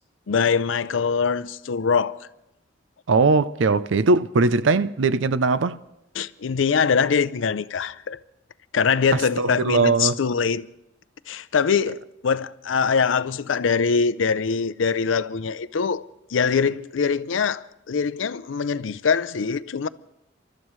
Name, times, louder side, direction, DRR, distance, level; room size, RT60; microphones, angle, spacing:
voice 1, 0.3-2.3 6.1-8.2 8.7-10.7 11.3-16.0 16.3-19.9, left 6 dB, 85° left, 0.5 m, -23 dB
voice 2, 3.1-5.8 9.4-10.2, right 3 dB, 75° right, 0.5 m, -20 dB
28.5 x 13.0 x 3.2 m
head